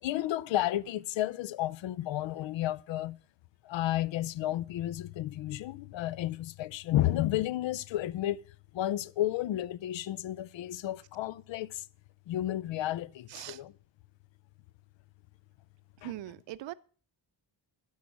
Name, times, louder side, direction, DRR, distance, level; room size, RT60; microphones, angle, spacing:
voice 1, 0.0-3.2 3.6-8.4 8.7-11.8 12.3-13.7 16.0-16.1, left 14 dB, 80° left, 0.5 m, -32 dB
voice 2, 13.3-13.6 16.0-16.7, right 14 dB, 75° right, 0.6 m, -41 dB
12.5 x 5.6 x 5.9 m
wide cardioid pair, 150°, 44 cm